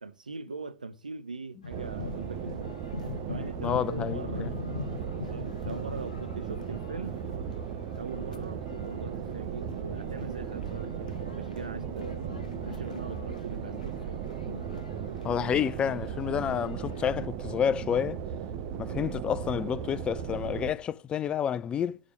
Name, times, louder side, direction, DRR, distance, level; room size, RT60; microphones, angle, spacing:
voice 1, 0.0-2.7 3.3-4.8 5.1-7.2 8.0-14.2 16.5-16.7, right 4 dB, 85° right, 0.4 m, -41 dB
sound 1, 1.6-17.3, left 6 dB, 75° left, 0.6 m, -43 dB
sound 2, 1.7-20.7, right 8 dB, 50° right, 0.8 m, -36 dB
voice 2, 3.6-4.5 15.2-18.2 18.8-22.0, left 8 dB, 25° left, 0.3 m, -29 dB
6.6 x 4.9 x 5.8 m
figure-of-eight pair, 95°, 4 cm